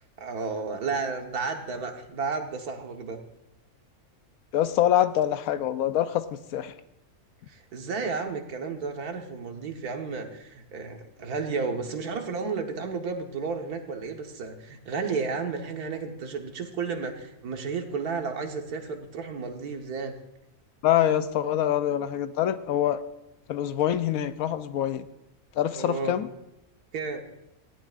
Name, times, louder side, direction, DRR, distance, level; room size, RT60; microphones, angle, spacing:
voice 1, 0.2-3.2 7.5-20.2 25.8-26.1 26.9-27.2, right 4 dB, 85° right, 4 dB, 1.7 m, -32 dB
voice 2, 4.5-6.7 20.8-23.0 23.5-25.1 25.6-26.3, left 11 dB, 75° left, 12 dB, 1.1 m, -25 dB
18.5 x 14.5 x 2.5 m, 0.88 s
omnidirectional pair, 1.6 m